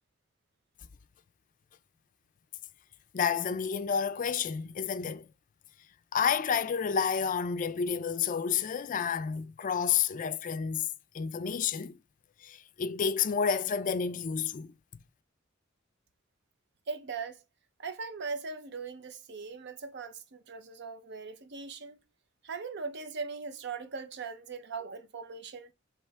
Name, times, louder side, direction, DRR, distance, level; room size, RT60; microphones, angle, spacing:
voice 1, 3.1-5.3 6.1-10.9 11.1-12.0 12.4-14.7, left 7 dB, 40° left, 0.4 m, -30 dB
voice 2, 16.9-17.4 17.8-22.0 22.4-25.7, right 4 dB, 60° right, 0.6 m, -40 dB
3.3 x 3.1 x 4.5 m
head